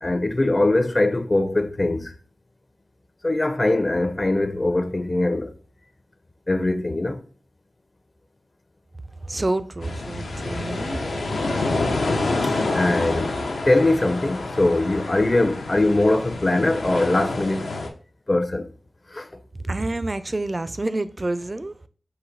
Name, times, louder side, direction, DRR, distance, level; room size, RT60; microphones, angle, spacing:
voice 1, 0.0-2.1 3.2-5.5 6.5-7.2 12.4-13.4 13.7-17.8 18.3-18.7 19.1-19.4, left 2 dB, 40° left, 0.5 m, -22 dB
voice 2, 9.2-11.0 19.6-21.9, right 2 dB, 35° right, 0.4 m, -28 dB
sound 1, 9.8-17.9, left 2 dB, 90° left, 0.6 m, -27 dB
3.9 x 2.4 x 4.5 m
cardioid pair, 45°, 0 cm